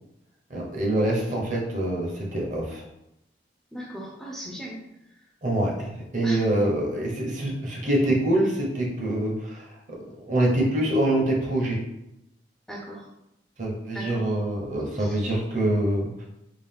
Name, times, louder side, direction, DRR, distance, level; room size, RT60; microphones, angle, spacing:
voice 1, 0.5-2.8 5.4-10.0 10.3-11.8 13.6-16.2, right 1 dB, 45° right, -2 dB, 0.8 m, -25 dB
voice 2, 3.7-4.7 6.2-6.4 12.7-13.0 13.9-14.2 15.0-15.2, equal, 5° left, -4 dB, 0.5 m, -36 dB
3.7 x 2.4 x 3.5 m, 0.86 s
head